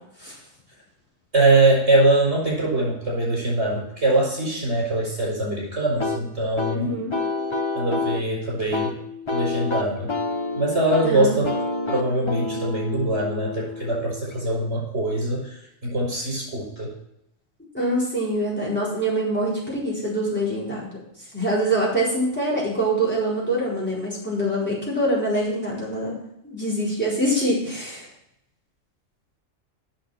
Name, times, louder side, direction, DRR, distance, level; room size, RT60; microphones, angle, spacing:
voice 1, 1.3-6.9 7.7-9.0 9.3-10.1 10.5-11.5 11.9-16.9, right 2 dB, 55° right, -5 dB, 5.4 m, -22 dB
sound 1, 6.0-14.6, left 3 dB, 25° left, 0.8 m, -29 dB
voice 2, 6.7-7.1 11.0-11.4 17.7-20.9 21.3-26.2 26.4-28.1, right 1 dB, 10° left, -8 dB, 4.5 m, -24 dB
8.7 x 6.6 x 7.2 m, 0.78 s
omnidirectional pair, 1.3 m